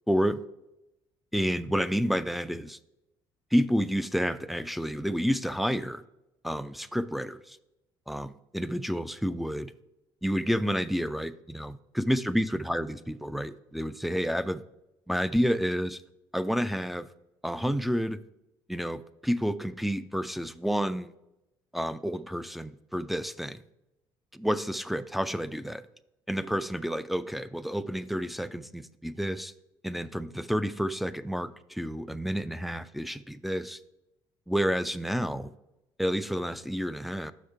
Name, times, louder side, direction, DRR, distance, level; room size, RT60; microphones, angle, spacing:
voice 1, 0.1-0.4 1.3-2.8 3.5-6.0 6.4-7.6 8.1-9.7 10.2-14.6 15.1-16.0 16.3-17.1 17.4-18.2 18.7-21.1 21.7-23.6 24.3-25.8 26.3-29.5 29.8-33.8 34.5-35.5 36.0-37.3, equal, ahead, 11 dB, 0.3 m, -30 dB
6.4 x 5.1 x 4.5 m, 0.93 s
cardioid pair, 95°, 10 cm